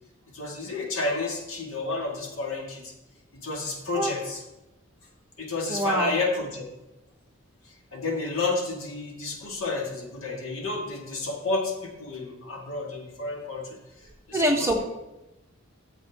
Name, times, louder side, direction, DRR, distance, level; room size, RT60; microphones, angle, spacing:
voice 1, 0.3-2.9 3.4-4.4 5.4-6.6 7.9-13.8 14.3-14.7, left 3 dB, 85° left, 1 dB, 2.0 m, -30 dB
voice 2, 5.7-6.1 14.3-14.8, right 1 dB, 15° right, 0 dB, 1.2 m, -24 dB
12.5 x 7.3 x 3.6 m, 0.96 s
head